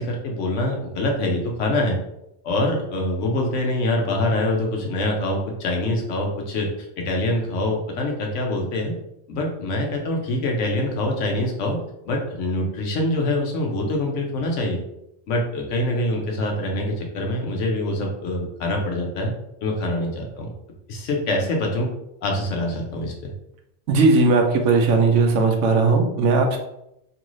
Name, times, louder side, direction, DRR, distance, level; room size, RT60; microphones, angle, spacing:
voice 1, 0.0-2.0 2.4-6.7 7.0-8.9 9.3-11.8 12.1-14.8 15.3-19.3 19.6-20.5 20.9-21.9 22.2-23.3, left 1 dB, 85° left, 1 dB, 1.1 m, -24 dB
voice 2, 23.9-26.6, right 3 dB, 80° right, 3 dB, 0.9 m, -18 dB
3.0 x 2.5 x 3.0 m, 0.81 s
omnidirectional pair, 1.2 m